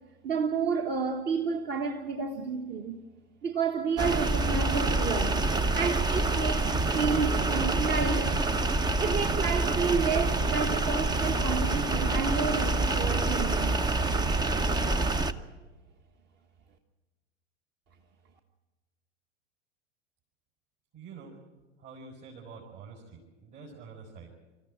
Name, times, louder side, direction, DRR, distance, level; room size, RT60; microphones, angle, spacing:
voice 1, 0.2-3.0 3.4-5.4 5.7-8.3 9.0-13.7, right 5 dB, 30° right, 1.5 m, -30 dB
sound 1, 4.0-15.3, right 2 dB, 10° right, 0.8 m, -27 dB
voice 2, 20.9-21.4 21.8-24.3, right 5 dB, 45° right, 5.2 m, -47 dB
27.0 x 14.5 x 8.9 m
figure-of-eight pair, 85°, 36 cm